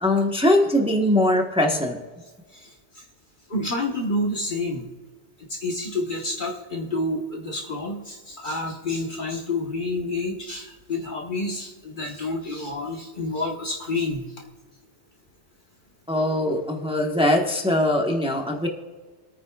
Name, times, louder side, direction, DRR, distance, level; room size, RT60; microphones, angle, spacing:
voice 1, 0.0-2.0 16.1-18.7, left 1 dB, 5° right, 1 dB, 1.2 m, -21 dB
voice 2, 3.5-4.9 5.5-14.2, left 2 dB, 45° left, -1 dB, 1.4 m, -29 dB
28.0 x 9.4 x 2.4 m, 1.3 s
omnidirectional pair, 1.2 m